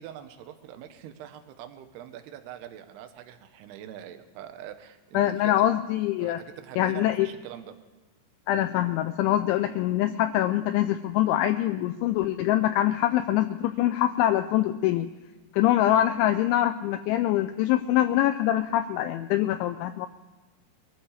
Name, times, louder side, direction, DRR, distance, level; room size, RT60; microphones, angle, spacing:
voice 1, 0.0-5.7 6.2-7.7, right 10 dB, 75° right, 8 dB, 2.5 m, -43 dB
voice 2, 5.1-6.4 6.8-7.3 8.5-15.1 15.5-20.1, left 13 dB, 85° left, 7 dB, 2.8 m, -24 dB
23.0 x 14.5 x 3.3 m, 1.2 s
omnidirectional pair, 5.6 m